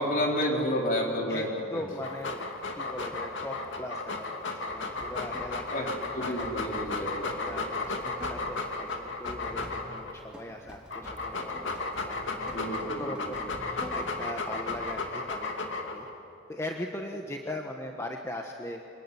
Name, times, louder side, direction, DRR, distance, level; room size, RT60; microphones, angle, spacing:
voice 1, 0.0-1.8 5.7-5.9 6.1-7.3 12.5-13.4, equal, 45° left, 0 dB, 4.4 m, -30 dB
voice 2, 1.7-2.5 2.8-6.7 7.4-16.1 16.5-18.8, left 1 dB, 15° left, 2 dB, 1.3 m, -40 dB
Dog, 1.9-10.1 10.7-16.1, left 3 dB, 65° left, 2.7 m, -34 dB
sound 1, 4.7-15.1, equal, 5° right, 3.0 m, -46 dB
25.5 x 22.0 x 9.8 m, 2.8 s
head